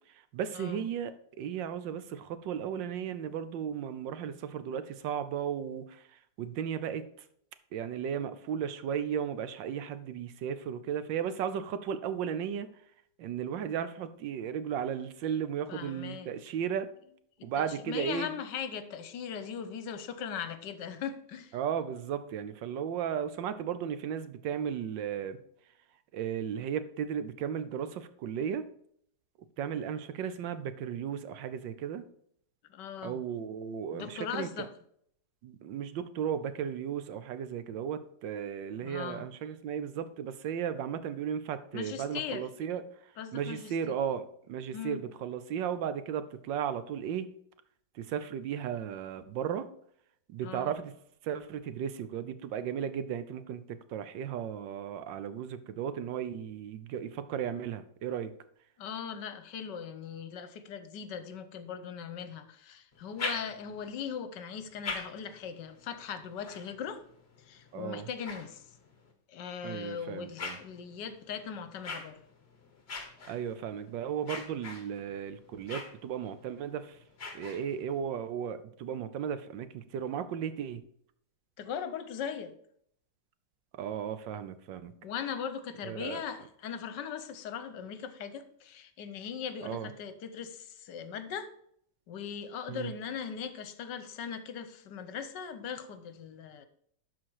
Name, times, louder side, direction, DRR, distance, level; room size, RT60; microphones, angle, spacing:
voice 1, 0.3-6.1 6.4-7.0 7.7-12.7 13.2-16.9 17.4-18.3 21.5-25.4 26.1-28.7 29.6-32.0 33.0-34.5 35.4-42.8 43.3-47.3 47.9-49.7 50.3-50.9 51.2-58.3 67.7-68.1 69.6-70.6 73.3-77.0 77.3-80.8 83.8-84.9 85.8-86.2 89.6-89.9 92.7-92.9, right 8 dB, 90° right, 12 dB, 1.5 m, -35 dB
voice 2, 15.7-16.3 17.4-21.6 32.7-33.2 33.9-34.7 38.8-39.2 41.7-42.5 43.2-44.0 44.7-45.0 50.4-50.7 58.8-67.0 67.4-68.6 69.3-72.2 81.6-82.5 85.0-91.5 92.1-96.7, left 7 dB, 75° left, 11 dB, 1.4 m, -39 dB
sound 1, 62.9-63.9 64.5-69.1 69.7-78.0, left 3 dB, 35° left, 1.5 m, -44 dB
12.0 x 4.5 x 4.7 m, 0.67 s
omnidirectional pair, 1.9 m